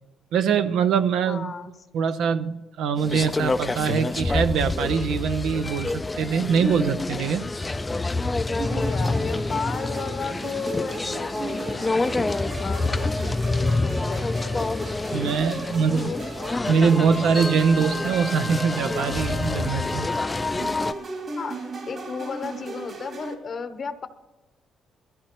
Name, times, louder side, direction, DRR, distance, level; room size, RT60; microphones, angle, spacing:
voice 1, 0.3-1.5 1.9-7.7 15.1-16.1 16.7-20.1, right 6 dB, 85° right, 10 dB, 0.6 m, -23 dB
voice 2, 1.3-1.7 8.6-14.7 15.7-16.2 21.4-24.1, left 5 dB, 50° left, 8 dB, 0.9 m, -34 dB
sound 1, 3.0-20.9, left 3 dB, 20° left, 0.4 m, -27 dB
sound 2, 8.6-23.3, right 2 dB, 55° right, 2.7 m, -37 dB
22.5 x 14.0 x 3.0 m, 1.1 s
cardioid pair, 90°, 0 cm